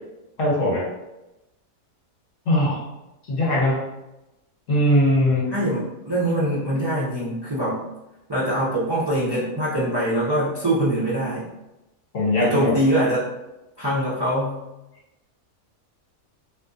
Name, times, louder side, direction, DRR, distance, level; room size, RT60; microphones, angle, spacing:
voice 1, 0.4-0.9 2.5-2.8 3.3-3.8 4.7-5.5 12.1-12.7, left 1 dB, 60° left, -5 dB, 1.4 m, -20 dB
voice 2, 5.5-7.8 8.3-11.5 12.4-13.2 13.8-14.6, right 1 dB, 30° right, -9 dB, 0.4 m, -23 dB
3.6 x 2.6 x 2.6 m, 0.96 s
omnidirectional pair, 1.6 m